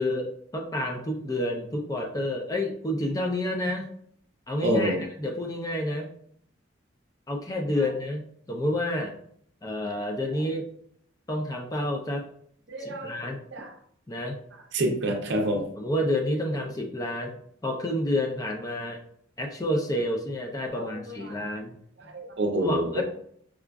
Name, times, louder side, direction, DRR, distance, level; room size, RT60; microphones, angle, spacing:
voice 1, 0.0-3.9 4.5-6.1 7.3-9.1 9.6-10.7 11.3-12.2 12.8-13.4 14.1-14.4 15.8-19.0 19.4-21.7 22.6-23.0, left 1 dB, 15° left, 1 dB, 0.4 m, -29 dB
voice 2, 4.6-5.0 12.7-13.1 13.5-13.7 14.7-15.7 20.9-21.4 22.1-23.0, right 1 dB, 55° right, 3 dB, 0.6 m, -27 dB
4.8 x 2.4 x 2.3 m, 0.65 s
head